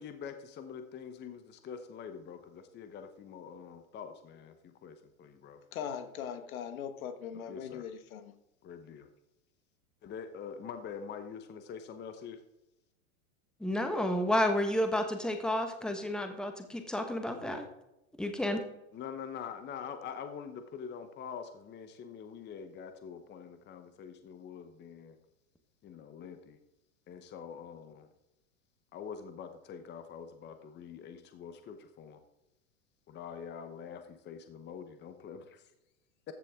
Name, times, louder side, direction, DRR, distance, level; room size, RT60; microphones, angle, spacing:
voice 1, 0.0-5.6 7.3-7.9 8.6-9.1 10.0-12.4 18.9-25.2 25.8-26.6 27.1-28.1 28.9-32.2 33.1-35.7, left 7 dB, 25° left, 8 dB, 1.0 m, -45 dB
voice 2, 5.7-8.4, left 8 dB, 75° left, 9 dB, 1.5 m, -40 dB
voice 3, 13.6-17.7 18.2-18.6, left 1 dB, ahead, 5 dB, 1.3 m, -31 dB
14.5 x 7.6 x 3.7 m, 0.90 s
hypercardioid pair, 125°, 42 cm